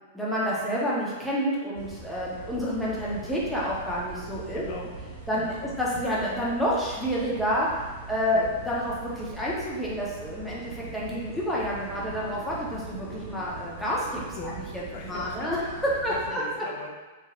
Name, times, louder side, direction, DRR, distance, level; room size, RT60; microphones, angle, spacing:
voice 1, 0.1-4.6 5.3-7.7 8.1-16.4, equal, 5° left, -7 dB, 0.8 m, -29 dB
sound 1, 1.7-16.3, right 3 dB, 60° right, 1.4 m, -42 dB
voice 2, 4.5-5.6 8.3-8.5 14.3-14.5 14.9-15.7 16.1-16.9, left 3 dB, 45° left, 0 dB, 0.5 m, -40 dB
3.2 x 2.7 x 2.4 m, 1.3 s
figure-of-eight pair, 100°, 0 cm